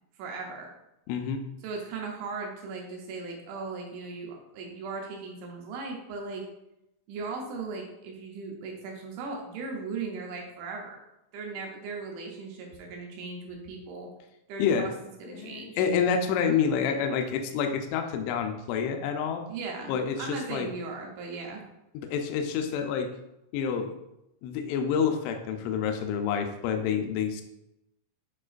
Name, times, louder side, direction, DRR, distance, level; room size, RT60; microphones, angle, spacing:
voice 1, 0.2-0.7 1.6-6.5 7.1-11.0 11.3-14.1 14.5-14.9 15.2-15.8 19.5-19.9 20.2-21.6, right 4 dB, 75° right, 0 dB, 2.8 m, -37 dB
voice 2, 1.1-1.4 14.6-14.9 15.3-19.4 19.9-20.7 22.0-23.1 23.5-23.9 24.4-27.4, left 7 dB, 85° left, 5 dB, 2.6 m, -28 dB
8.7 x 4.5 x 2.5 m, 0.88 s
omnidirectional pair, 5.9 m